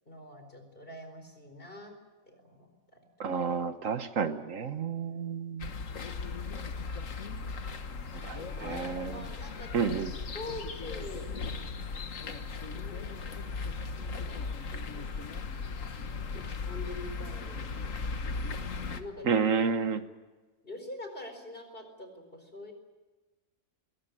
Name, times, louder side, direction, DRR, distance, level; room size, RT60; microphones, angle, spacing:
voice 1, 0.0-2.0 2.2-3.1 8.4-11.4 12.7-15.1 16.3-18.2 18.9-19.3 20.6-22.7, left 1 dB, 40° left, 6 dB, 4.7 m, -45 dB
voice 2, 3.2-5.7 8.2-9.2 9.7-10.1 19.3-20.0, right 6 dB, 70° right, 10 dB, 1.5 m, -30 dB
sound 1, 5.6-19.0, left 4 dB, 70° left, 1.7 m, -37 dB
21.5 x 18.5 x 9.9 m, 1.2 s
omnidirectional pair, 1.4 m